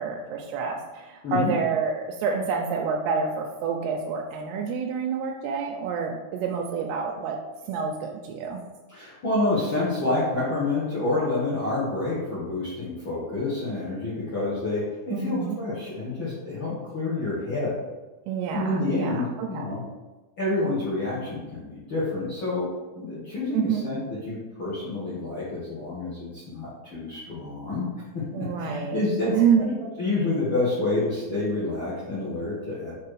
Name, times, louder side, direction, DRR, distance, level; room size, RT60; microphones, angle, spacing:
voice 1, 0.0-7.4 7.7-8.6 15.1-15.6 18.3-19.7 23.5-23.9 28.3-29.6, right 6 dB, 90° right, 1 dB, 2.6 m, -28 dB
voice 2, 8.9-17.8 18.5-19.8 20.4-22.7 22.9-27.9 28.1-29.3 29.6-29.7 30.0-32.9, left 2 dB, 65° left, -9 dB, 1.2 m, -28 dB
6.8 x 3.1 x 4.7 m, 1.1 s
omnidirectional pair, 4.4 m